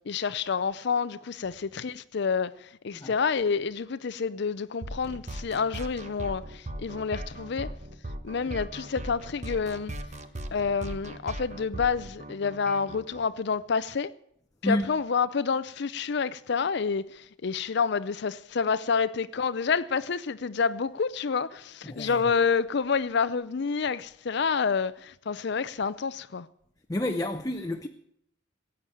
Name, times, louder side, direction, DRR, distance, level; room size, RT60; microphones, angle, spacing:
voice 1, 0.1-7.8 8.2-9.9 10.5-14.1 14.6-26.5, left 5 dB, 55° left, 0.5 m, -28 dB
sound 1, 4.8-13.2, right 1 dB, 35° right, 1.1 m, -39 dB
voice 2, 21.8-22.2 26.9-27.9, left 1 dB, 15° left, 0.7 m, -29 dB
16.5 x 8.8 x 9.1 m
head